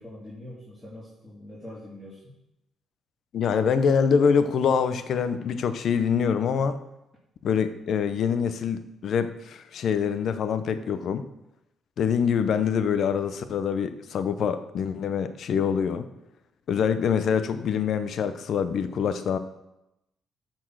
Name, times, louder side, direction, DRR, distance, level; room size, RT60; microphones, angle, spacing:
voice 1, 0.0-2.4, left 1 dB, 10° left, -8 dB, 3.1 m, -43 dB
voice 2, 3.3-6.8 7.4-11.3 12.0-16.1 16.7-19.4, left 7 dB, 65° left, 11 dB, 0.8 m, -25 dB
13.0 x 4.4 x 6.3 m, 0.90 s
cardioid pair, 90°, 0 cm